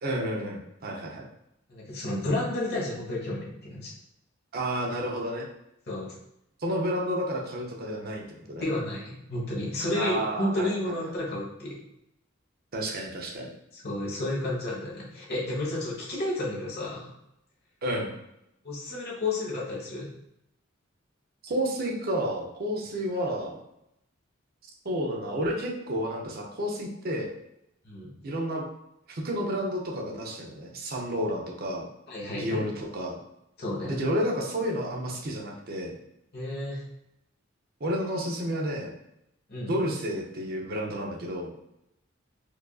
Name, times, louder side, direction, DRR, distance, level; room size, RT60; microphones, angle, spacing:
voice 1, 0.0-1.3 4.5-5.5 6.6-8.7 9.9-11.2 12.7-13.5 17.8-18.1 21.4-23.6 24.8-27.3 28.2-28.6 29.1-31.9 32.4-33.2 33.9-35.9 37.8-38.9 39.7-41.5, equal, 50° right, 0 dB, 0.6 m, -31 dB
voice 2, 1.7-3.9 5.9-6.1 8.6-11.8 13.7-17.1 18.6-20.1 27.8-28.1 32.1-32.6 33.6-34.0 36.3-36.8 39.5-39.7, left 1 dB, 55° left, -4 dB, 1.2 m, -31 dB
4.6 x 2.5 x 2.3 m, 0.82 s
head